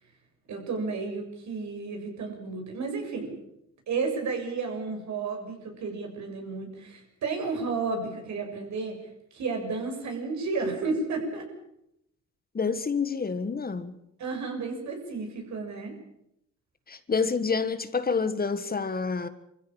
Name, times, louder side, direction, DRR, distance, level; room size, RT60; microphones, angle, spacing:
voice 1, 0.5-3.4 3.9-9.0 9.3-11.5 14.2-15.9, right 4 dB, 65° right, 7.0 m, -32 dB
voice 2, 12.5-14.0 16.9-19.3, left 5 dB, 30° left, 1.6 m, -28 dB
25.0 x 15.0 x 8.8 m
cardioid pair, 90°, 30 cm